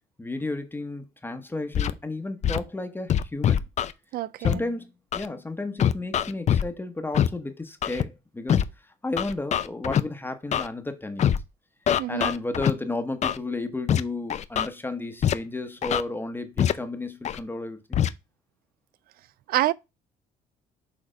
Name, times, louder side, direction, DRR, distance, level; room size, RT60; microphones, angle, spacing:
voice 1, 0.2-3.6 4.4-8.6 9.0-11.3 12.1-18.0, left 2 dB, 10° left, 1.0 m, -33 dB
Scratching (performance technique), 1.7-1.9 2.4-2.6 3.1-3.9 4.4-4.5 5.1-5.3 5.8-6.6 7.1-7.3 7.8-8.0 8.5-8.6 9.2-10.0 10.5-10.7 11.2-11.4 11.9-12.7 13.2-13.4 13.9-14.0 14.3-14.7 15.2-15.3 15.8-16.0 16.6-16.7 17.2-17.4 17.9-18.1, left 9 dB, 45° left, 0.5 m, -23 dB
voice 2, 4.1-4.6 12.0-12.3 19.5-19.7, right 15 dB, 60° right, 0.4 m, -26 dB
6.5 x 3.4 x 5.0 m
cardioid pair, 110°, 17 cm